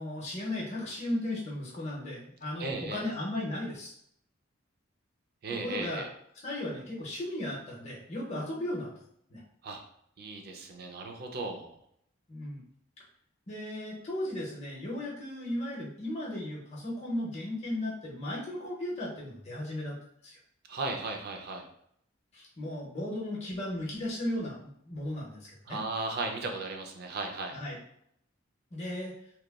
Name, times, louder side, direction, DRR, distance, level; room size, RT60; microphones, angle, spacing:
voice 1, 0.0-4.0 5.5-6.0 6.4-8.9 9.3-9.4 12.3-12.6 13.5-20.0 20.2-20.4 22.3-24.6 24.9-25.8 27.5-27.8 28.7-29.1, left 1 dB, 35° left, -5 dB, 0.6 m, -36 dB
voice 2, 2.6-3.0 5.4-6.1 9.6-9.8 10.2-11.7 20.7-21.7 25.7-27.6, right 3 dB, 55° right, 3 dB, 0.4 m, -36 dB
2.9 x 2.2 x 2.3 m, 0.70 s
head